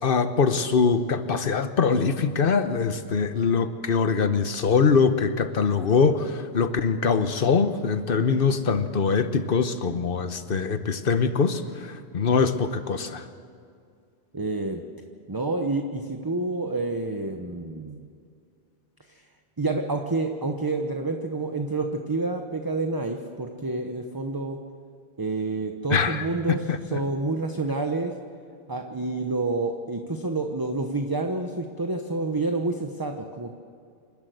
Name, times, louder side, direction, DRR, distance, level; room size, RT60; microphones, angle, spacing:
voice 1, 0.0-13.3 25.9-26.3 26.7-27.0, left 5 dB, 60° left, 10 dB, 1.2 m, -23 dB
voice 2, 14.3-14.8 15.3-18.0 19.1-19.2 19.6-24.6 25.2-26.6 26.9-28.1 28.7-33.5, right 3 dB, 20° right, 4 dB, 1.0 m, -28 dB
27.5 x 12.5 x 7.8 m, 2.3 s
omnidirectional pair, 1.0 m